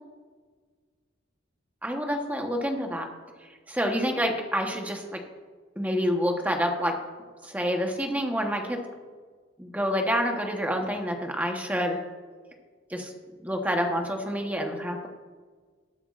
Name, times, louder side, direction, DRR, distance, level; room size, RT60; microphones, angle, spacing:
voice 1, 1.8-3.1 3.7-5.2 5.8-7.0 7.4-8.8 9.6-12.0 12.9-13.1 13.4-15.1, equal, 10° right, 2 dB, 1.1 m, -28 dB
19.5 x 8.1 x 2.5 m, 1.5 s
head